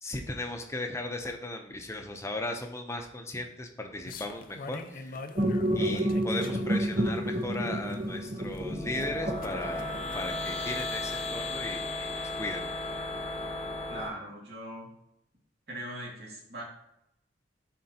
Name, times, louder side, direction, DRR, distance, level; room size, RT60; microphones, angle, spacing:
voice 1, 0.0-5.2 5.7-12.6, left 2 dB, 15° left, 4 dB, 0.7 m, -37 dB
sound 1, 4.0-11.1, left 3 dB, 50° left, 0.5 m, -44 dB
sound 2, 5.4-10.2, right 1 dB, 30° right, 0.6 m, -30 dB
sound 3, 8.4-14.1, left 2 dB, 35° left, 1.0 m, -35 dB
voice 2, 13.9-14.9 15.7-16.6, right 1 dB, 60° right, -4 dB, 2.4 m, -40 dB
11.5 x 4.4 x 2.9 m, 0.80 s
head